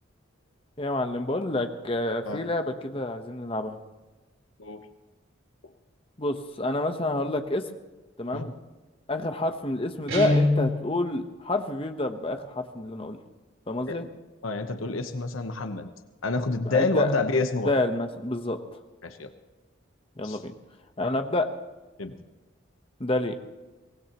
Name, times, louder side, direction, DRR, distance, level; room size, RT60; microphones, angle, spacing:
voice 1, 0.8-3.8 6.2-7.7 8.2-8.5 9.1-13.2 13.7-14.0 16.7-17.1 17.6-18.6 20.2-20.5 21.0-21.5 23.0-23.4, left 2 dB, 30° left, 6 dB, 1.1 m, -28 dB
Guitar, 10.1-10.9, left 2 dB, 75° right, 4.2 m, -23 dB
voice 2, 14.4-15.9 16.2-17.7 19.0-19.3 20.2-20.4 22.0-22.1, left 3 dB, 90° left, 7 dB, 1.1 m, -28 dB
23.5 x 18.5 x 3.1 m, 1.2 s
head